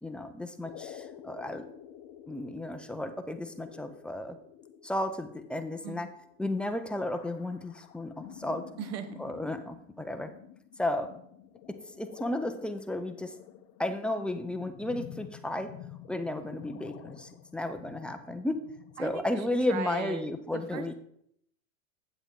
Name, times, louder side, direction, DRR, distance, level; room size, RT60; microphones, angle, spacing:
voice 1, 0.0-1.6 2.3-4.4 4.8-6.1 6.4-8.7 9.2-10.3 10.8-11.1 12.0-13.3 13.8-15.7 16.1-18.7 19.0-20.9, left 1 dB, 5° left, 7 dB, 0.4 m, -33 dB
sound 1, 0.6-19.8, left 11 dB, 40° left, 0.8 m, -50 dB
voice 2, 8.8-9.2 19.0-20.3 20.5-20.9, right 7 dB, 40° right, 9 dB, 1.2 m, -38 dB
8.5 x 7.9 x 3.7 m, 0.71 s
supercardioid pair, 125°, 41 cm